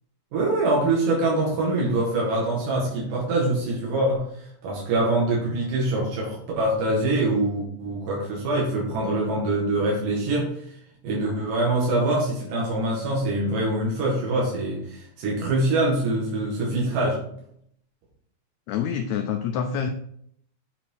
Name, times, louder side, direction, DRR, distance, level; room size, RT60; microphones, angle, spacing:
voice 1, 0.3-4.3 4.6-10.5 11.0-17.2, right 2 dB, 80° right, -4 dB, 3.5 m, -24 dB
voice 2, 18.7-19.9, left 7 dB, 80° left, 5 dB, 1.6 m, -26 dB
7.8 x 5.9 x 4.6 m, 0.68 s
omnidirectional pair, 3.7 m